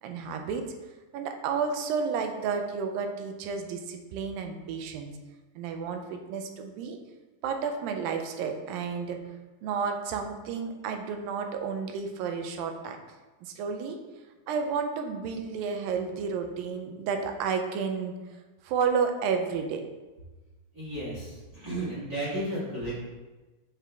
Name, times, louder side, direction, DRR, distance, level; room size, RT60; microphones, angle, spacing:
voice 1, 0.0-0.6 1.1-5.1 5.6-7.0 7.4-9.2 9.6-13.0 13.4-14.0 14.5-18.2 18.6-19.8, right 6 dB, 85° right, 5 dB, 2.3 m, -31 dB
voice 2, 20.7-22.9, right 1 dB, 35° right, -9 dB, 1.6 m, -33 dB
7.4 x 3.8 x 3.4 m, 1.2 s
omnidirectional pair, 4.0 m